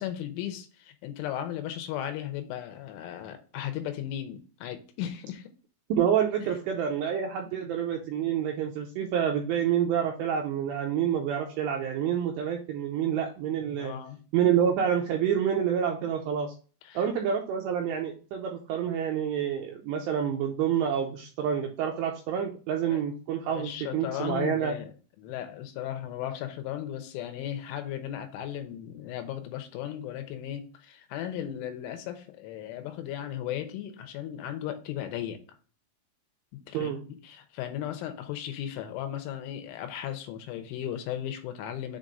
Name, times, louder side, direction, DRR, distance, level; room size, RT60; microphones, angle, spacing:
voice 1, 0.0-5.5 13.8-14.2 16.8-17.0 22.9-23.0 23.5-24.9 25.2-35.4 36.5-42.0, left 11 dB, 80° left, 3.0 m, -36 dB
voice 2, 5.9-13.9 14.3-16.5 16.9-24.8 36.7-37.0, right 8 dB, 85° right, 2.5 m, -28 dB
7.5 x 2.5 x 5.2 m
omnidirectional pair, 5.7 m